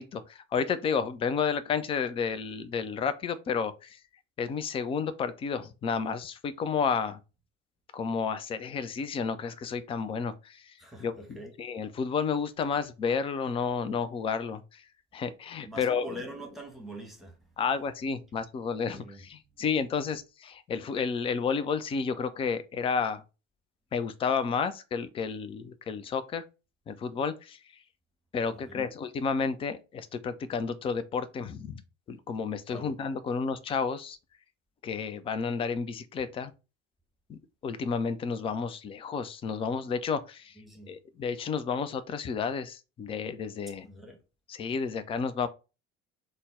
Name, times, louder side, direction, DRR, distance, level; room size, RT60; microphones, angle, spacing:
voice 1, 0.0-4.0 4.4-7.2 7.9-10.7 11.0-14.8 15.1-16.1 17.6-23.2 23.9-26.4 26.9-27.6 28.3-31.8 32.1-34.2 34.8-36.5 37.3-40.5 40.9-43.9 44.5-45.5, left 6 dB, 15° left, 0.3 m, -31 dB
voice 2, 10.8-11.5 15.6-17.3 18.9-19.6 28.5-28.9 32.7-32.9 40.6-40.9 43.8-44.2, equal, ahead, 1.2 m, -44 dB
3.9 x 2.1 x 3.5 m
figure-of-eight pair, 60°, 36 cm